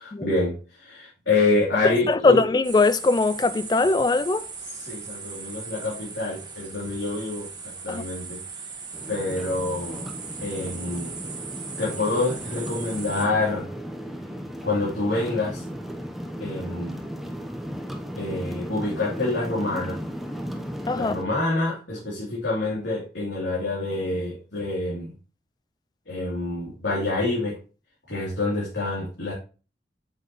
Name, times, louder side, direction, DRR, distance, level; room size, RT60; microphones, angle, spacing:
voice 1, 0.0-2.4 4.7-8.4 9.1-10.1 10.4-11.2 11.8-13.7 14.6-15.6 16.4-17.0 18.2-20.0 20.9-25.1 26.1-27.6 28.1-29.3, left 2 dB, 80° left, 3.0 m, -27 dB
voice 2, 2.1-4.5 7.9-8.0 20.9-21.1, left 3 dB, 20° left, 0.3 m, -20 dB
sound 1, 2.6-13.3, right 5 dB, 25° right, 1.4 m, -38 dB
sound 2, 8.9-21.2, equal, ahead, 0.8 m, -35 dB
8.1 x 7.1 x 3.0 m
head